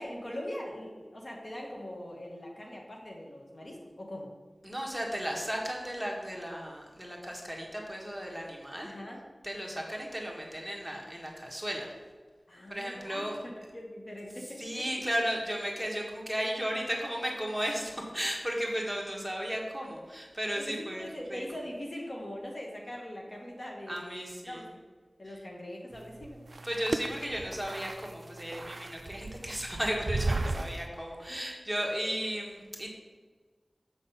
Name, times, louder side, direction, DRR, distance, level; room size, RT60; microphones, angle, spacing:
voice 1, 0.0-4.3 8.8-9.2 12.5-15.0 20.5-24.7 25.2-26.4 31.1-31.5, left 1 dB, 55° left, -1 dB, 1.2 m, -42 dB
voice 2, 4.6-8.9 9.4-11.9 12.7-13.4 14.6-21.4 23.9-24.6 26.6-32.9, equal, 5° right, -1 dB, 1.5 m, -35 dB
sound 1, 25.9-30.9, right 2 dB, 70° right, 0.3 m, -35 dB
6.7 x 4.1 x 5.5 m, 1.4 s
wide cardioid pair, 50°, 0 cm